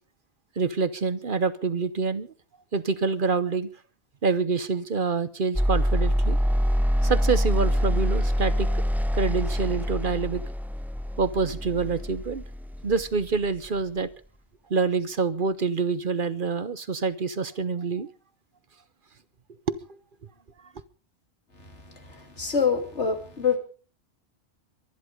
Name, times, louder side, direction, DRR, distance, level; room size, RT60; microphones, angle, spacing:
voice 1, 0.6-2.3 2.7-3.7 4.2-6.4 7.0-8.7 9.1-10.4 11.2-12.4 12.8-14.1 14.7-18.1 19.7-19.8, right 4 dB, 50° right, 1.0 m, -26 dB
sound 1, 5.5-13.7, equal, ahead, 0.8 m, -25 dB
voice 2, 21.6-23.6, left 6 dB, 75° left, 3.1 m, -27 dB
23.0 x 11.0 x 5.2 m
omnidirectional pair, 1.2 m